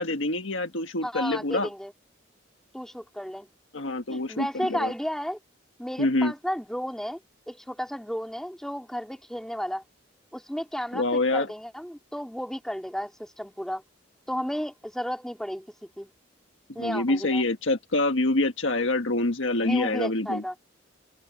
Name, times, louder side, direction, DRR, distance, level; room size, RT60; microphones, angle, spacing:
voice 1, 0.0-1.7 3.7-4.9 6.0-6.3 10.9-11.5 16.8-20.4, left 2 dB, 80° left, 1.6 m, -26 dB
voice 2, 1.0-1.9 2.7-3.5 4.1-5.4 5.8-7.2 7.5-9.8 10.3-13.8 14.3-16.1 16.7-17.4 19.6-20.5, equal, 5° left, 3.0 m, -33 dB
head